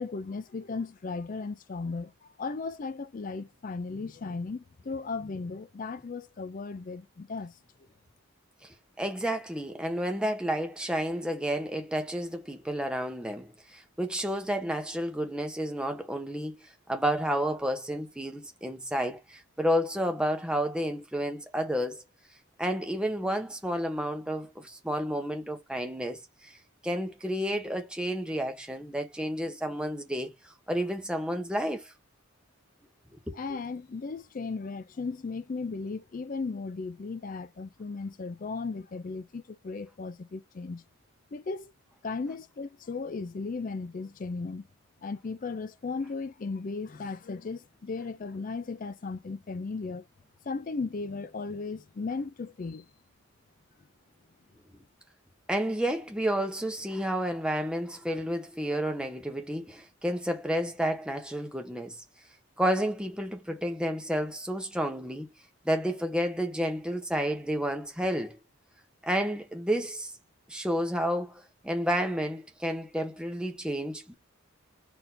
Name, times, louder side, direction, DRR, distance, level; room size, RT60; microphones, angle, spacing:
voice 1, 0.0-7.6 33.3-40.8 41.3-41.7 42.0-44.7 45.0-50.0 50.4-52.9, left 4 dB, 40° left, 0.4 m, -36 dB
voice 2, 9.0-16.6 16.9-22.0 22.6-26.6 26.8-31.9 33.3-33.4 55.5-62.0 62.6-65.3 65.6-68.4 69.0-70.1 70.5-74.1, equal, 5° right, 0.8 m, -31 dB
4.4 x 2.7 x 3.7 m
head